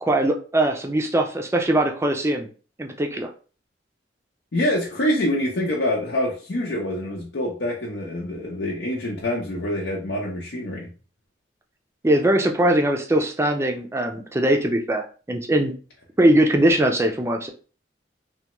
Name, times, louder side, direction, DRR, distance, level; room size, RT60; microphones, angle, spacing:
voice 1, 0.0-2.5 2.8-3.3 12.0-15.8 16.2-17.5, right 1 dB, 15° right, 3 dB, 0.4 m, -21 dB
voice 2, 4.5-10.9, left 1 dB, 80° left, -3 dB, 0.7 m, -26 dB
3.3 x 2.2 x 2.9 m, 0.37 s
head